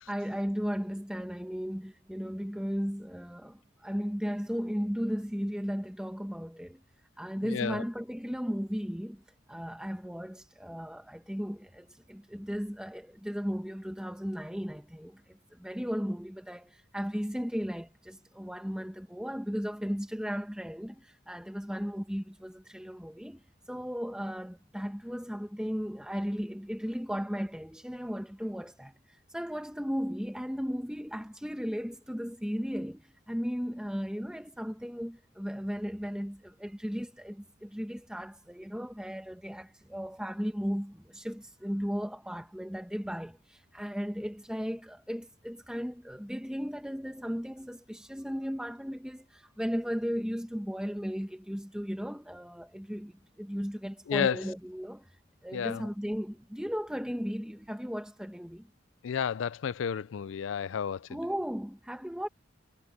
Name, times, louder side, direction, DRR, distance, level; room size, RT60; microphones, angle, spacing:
voice 1, 0.1-6.8 7.2-9.2 9.5-23.4 23.7-55.1 55.4-58.7 61.1-62.3, equal, 5° right, 1.2 m, -36 dB
voice 2, 7.5-7.8 54.1-54.4 55.5-55.8 59.0-61.1, left 7 dB, 80° left, 0.4 m, -31 dB
head